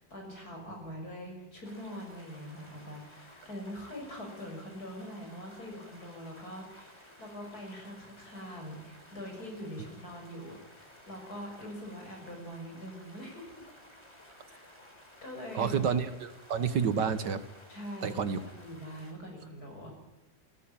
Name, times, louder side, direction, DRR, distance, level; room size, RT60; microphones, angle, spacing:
voice 1, 0.1-13.7 14.5-14.7 15.2-15.7 17.7-19.9, equal, 55° left, 2 dB, 6.7 m, -43 dB
sound 1, 1.6-19.1, left 1 dB, 15° left, 4.2 m, -55 dB
voice 2, 15.5-17.4 18.0-18.4, right 6 dB, 70° right, 12 dB, 1.9 m, -29 dB
18.5 x 18.5 x 9.0 m, 0.94 s
omnidirectional pair, 2.0 m